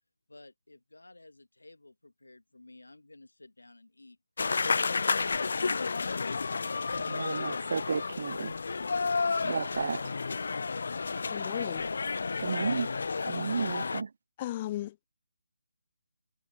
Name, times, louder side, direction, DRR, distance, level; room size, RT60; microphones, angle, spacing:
voice 1, 0.3-4.2, left 2 dB, 75° left, 2.3 m, -54 dB
sound 1, 4.4-14.0, left 4 dB, 55° left, 0.9 m, -31 dB
voice 2, 7.1-8.5 9.4-10.1 12.4-12.9 13.3-14.1, right 5 dB, 50° right, 0.4 m, -32 dB
voice 3, 11.3-11.9 14.4-15.0, left 14 dB, 25° left, 0.4 m, -35 dB
figure-of-eight pair, 145°, 0 cm